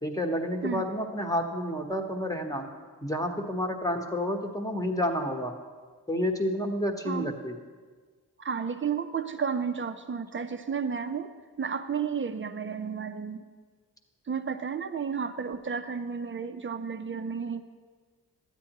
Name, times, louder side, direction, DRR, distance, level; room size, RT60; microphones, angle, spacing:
voice 1, 0.0-2.7 3.0-5.5 6.1-7.5, equal, 10° left, 3 dB, 1.1 m, -30 dB
voice 2, 7.0-7.3 8.4-11.3 11.6-13.5 14.3-17.6, right 6 dB, 30° right, 9 dB, 0.7 m, -32 dB
12.5 x 9.0 x 3.0 m, 1.5 s
cardioid pair, 55°, 39 cm